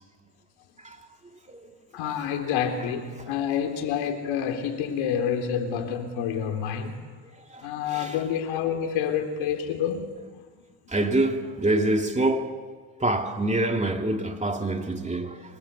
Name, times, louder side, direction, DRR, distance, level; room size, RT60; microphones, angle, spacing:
voice 1, 1.9-7.0 7.6-10.1, left 8 dB, 90° left, 3.6 m, -28 dB
voice 2, 10.9-12.7 13.0-15.4, right 2 dB, 15° right, 2.6 m, -25 dB
25.5 x 25.0 x 8.3 m
cardioid pair, 105°, 46 cm